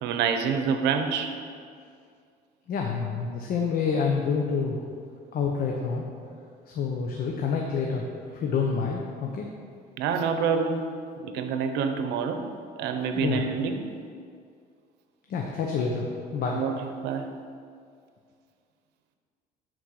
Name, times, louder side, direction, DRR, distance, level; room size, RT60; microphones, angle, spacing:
voice 1, 0.0-1.4 10.0-10.8 11.2-12.4 12.8-13.8 16.5-17.3, right 6 dB, 85° right, 7 dB, 0.8 m, -27 dB
voice 2, 2.7-4.8 5.3-6.1 6.7-8.0 8.3-9.5 13.1-13.4 15.3-16.0 16.3-16.6, left 5 dB, 60° left, 0 dB, 1.0 m, -27 dB
10.0 x 4.5 x 6.5 m, 2.2 s
cardioid pair, 110°, 17 cm